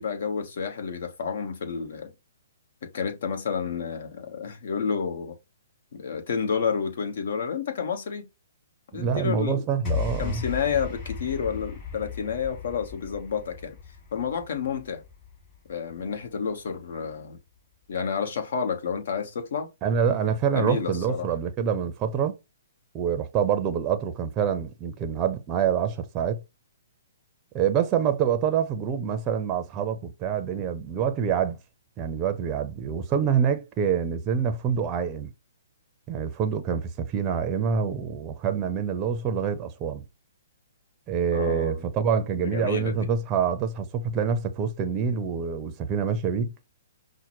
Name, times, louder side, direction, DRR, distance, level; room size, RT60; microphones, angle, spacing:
voice 1, 0.0-2.1 2.8-5.4 5.9-8.3 8.9-9.6 10.2-13.8 14.1-15.0 15.7-17.4 17.9-19.7 20.5-21.3 41.3-41.9 42.4-43.1, left 6 dB, 60° left, 1.1 m, -30 dB
voice 2, 8.9-10.4 19.8-22.3 22.9-26.4 27.5-31.6 32.0-35.3 36.1-40.0 41.1-46.5, right 7 dB, 25° right, 0.6 m, -26 dB
sound 1, 9.8-16.3, left 6 dB, 30° left, 2.7 m, -35 dB
5.6 x 2.1 x 3.0 m
hypercardioid pair, 130°, 0 cm